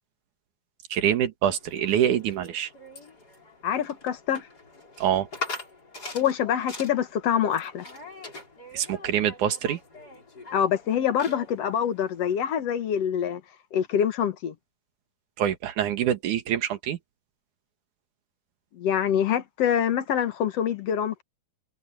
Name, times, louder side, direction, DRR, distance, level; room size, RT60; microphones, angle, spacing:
voice 1, 0.9-2.7 5.0-5.3 8.7-9.8 15.4-17.0, right 10 dB, 70° right, 3.0 m, -25 dB
sound 1, 1.5-12.4, left 3 dB, 30° left, 5.4 m, -43 dB
voice 2, 3.6-4.5 6.1-7.9 10.5-13.4 13.7-14.6 18.7-21.2, left 9 dB, 55° left, 2.2 m, -25 dB
omnidirectional pair, 3.7 m